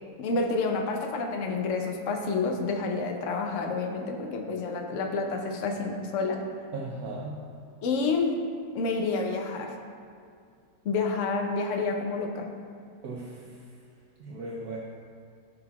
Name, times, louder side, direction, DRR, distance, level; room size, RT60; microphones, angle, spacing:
voice 1, 0.2-6.4 7.8-8.4 8.7-9.8 10.8-12.5, left 4 dB, 55° left, 3 dB, 1.0 m, -29 dB
voice 2, 6.7-7.4 13.0-13.5 14.2-14.8, right 2 dB, 70° right, -2 dB, 1.2 m, -37 dB
14.5 x 5.5 x 2.4 m, 2.3 s
omnidirectional pair, 1.7 m